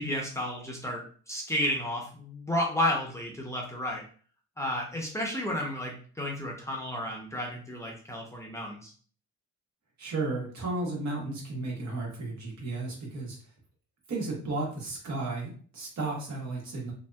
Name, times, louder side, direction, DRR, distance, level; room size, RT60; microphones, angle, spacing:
voice 1, 0.0-4.0 4.6-8.9, left 1 dB, 10° left, -1 dB, 0.7 m, -32 dB
voice 2, 10.0-13.4 14.1-16.9, right 2 dB, 65° right, -2 dB, 1.3 m, -34 dB
2.7 x 2.6 x 2.3 m, 0.43 s
cardioid pair, 90°, 30 cm